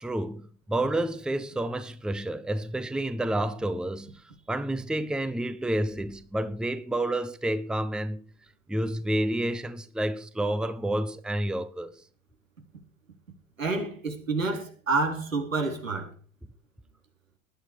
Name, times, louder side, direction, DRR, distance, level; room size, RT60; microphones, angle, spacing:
voice 1, 0.0-8.2 8.7-12.0, right 1 dB, ahead, 0.9 m, -29 dB
voice 2, 13.6-16.1, right 3 dB, 85° right, 3.8 m, -28 dB
19.0 x 11.0 x 4.7 m
figure-of-eight pair, 85°, 39 cm